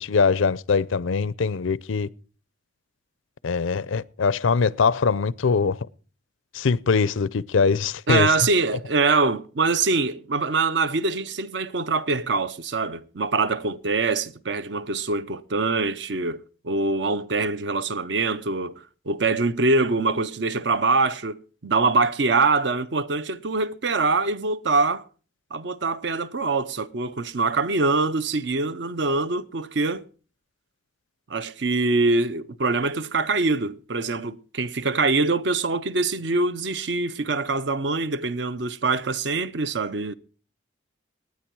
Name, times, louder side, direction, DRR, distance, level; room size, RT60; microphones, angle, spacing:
voice 1, 0.0-2.1 3.4-5.8 6.5-8.3, left 5 dB, 85° left, 0.5 m, -22 dB
voice 2, 8.1-25.0 25.5-30.0 31.3-40.1, right 3 dB, 65° right, 0.7 m, -24 dB
19.0 x 9.3 x 4.6 m
head